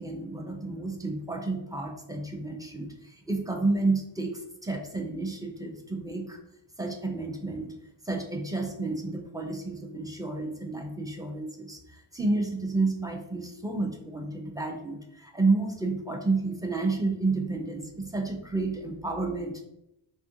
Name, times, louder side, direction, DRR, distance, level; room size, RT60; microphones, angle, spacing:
voice 1, 0.0-6.4 6.8-7.7 8.0-19.6, right 3 dB, 10° right, 2 dB, 0.3 m, -30 dB
2.8 x 2.5 x 2.5 m, 0.85 s
cardioid pair, 60°, 48 cm